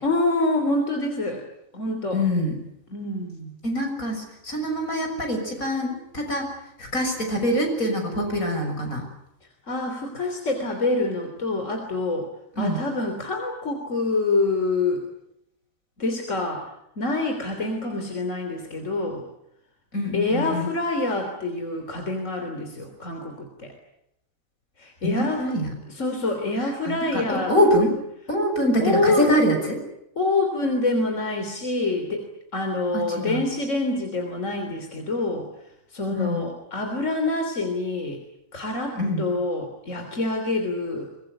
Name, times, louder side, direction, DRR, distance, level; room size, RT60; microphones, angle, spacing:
voice 1, 0.0-1.4 1.7-2.2 2.9-3.6 9.7-12.3 12.6-15.1 16.0-16.6 17.0-19.2 20.1-23.7 24.8-25.5 25.9-27.5 28.8-29.3 30.2-35.5 35.9-38.2 38.5-41.1, left 2 dB, 65° left, 4 dB, 3.7 m, -26 dB
voice 2, 2.1-2.5 3.6-6.5 6.8-9.0 12.6-12.8 19.9-20.7 25.0-25.7 26.6-27.9 28.3-29.8 32.9-33.4 36.1-36.5 38.9-39.2, equal, 85° left, 4 dB, 7.1 m, -24 dB
24.0 x 21.5 x 9.7 m, 0.80 s
omnidirectional pair, 1.4 m